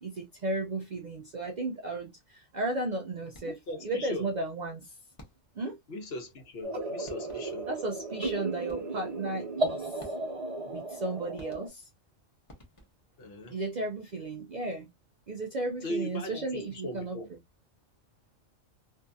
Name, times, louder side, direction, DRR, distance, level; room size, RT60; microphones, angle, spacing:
voice 1, 0.0-3.6 3.8-4.9 5.6-5.8 7.7-10.1 10.7-11.9 13.5-14.9 15.3-17.2, right 2 dB, 65° right, 0.4 m, -34 dB
sound 1, 3.3-3.8 5.2-5.7 6.7-6.8 7.1-7.7 8.7-9.1 10.0-10.5 11.4-12.0 12.5-13.2, left 1 dB, 30° left, 0.8 m, -53 dB
voice 2, 3.4-4.3 5.9-7.7 13.2-13.6 15.8-17.3, left 1 dB, 60° left, 1.0 m, -39 dB
sound 2, 6.6-11.7, right 2 dB, 35° right, 0.7 m, -35 dB
2.6 x 2.6 x 2.2 m
omnidirectional pair, 1.3 m